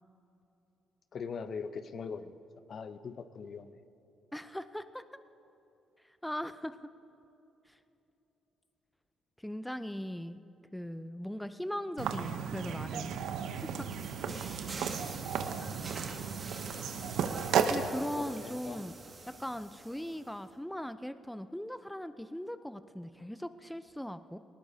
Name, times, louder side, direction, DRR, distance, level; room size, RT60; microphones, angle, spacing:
voice 1, 1.1-2.4 2.7-3.7 14.3-14.4 17.2-17.3 18.2-18.8, left 5 dB, 55° left, 11 dB, 0.7 m, -41 dB
voice 2, 4.3-5.0 6.2-6.9 7.7-7.8 9.4-13.2 13.6-13.9 17.7-18.9 19.3-24.4, equal, 5° left, 12 dB, 0.5 m, -39 dB
sound 1, 12.0-17.9, right 7 dB, 75° right, 0.8 m, -34 dB
sound 2, 12.8-20.4, right 3 dB, 40° right, 2.0 m, -46 dB
19.5 x 19.0 x 2.8 m, 3.0 s
supercardioid pair, 55°, 0 cm